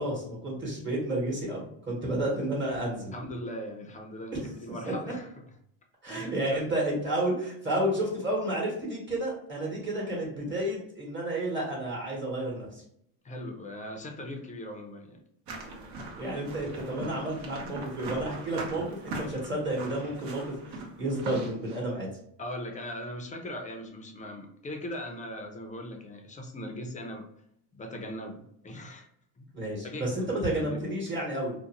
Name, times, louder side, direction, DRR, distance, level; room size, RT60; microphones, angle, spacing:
voice 1, 0.0-3.1 4.3-4.4 6.0-12.8 16.2-22.1 29.5-31.5, right 1 dB, 25° right, -3 dB, 1.1 m, -31 dB
voice 2, 3.1-5.3 6.1-6.7 13.2-15.2 22.4-27.2 27.7-29.1 29.4-29.6 29.8-30.9, left 1 dB, 20° left, 3 dB, 0.5 m, -39 dB
sound 1, 15.5-21.8, right 2 dB, 70° right, 0.9 m, -40 dB
2.5 x 2.1 x 2.8 m, 0.71 s
cardioid pair, 110°, 42 cm